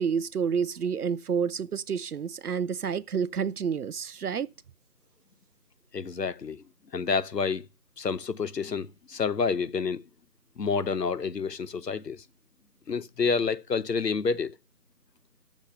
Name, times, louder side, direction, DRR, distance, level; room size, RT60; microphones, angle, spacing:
voice 1, 0.0-4.5, right 7 dB, 70° right, 0.5 m, -29 dB
voice 2, 5.9-6.6 6.9-7.7 8.0-10.0 10.6-12.2 12.9-14.5, left 5 dB, 85° left, 0.9 m, -29 dB
7.6 x 7.2 x 6.6 m
figure-of-eight pair, 165°, 48 cm